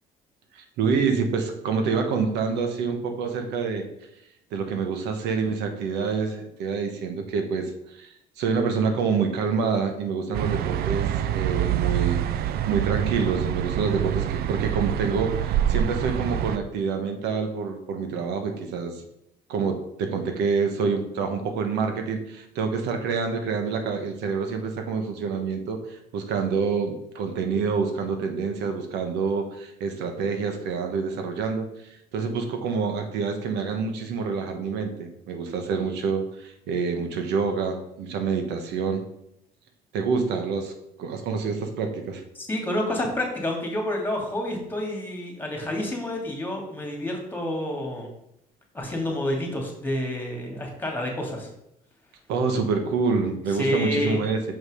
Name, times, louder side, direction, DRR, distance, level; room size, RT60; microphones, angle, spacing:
voice 1, 0.5-3.8 4.5-19.0 19.5-31.7 32.1-39.0 39.9-40.7 41.0-42.2 52.3-54.4, right 5 dB, 90° right, 5 dB, 1.2 m, -27 dB
sound 1, 10.3-16.6, right 11 dB, 65° right, 0.5 m, -26 dB
voice 2, 42.3-48.1 48.7-51.5 53.5-54.2, left 1 dB, 10° left, 1 dB, 2.3 m, -29 dB
5.9 x 5.4 x 4.9 m, 0.80 s
cardioid pair, 110°, 17 cm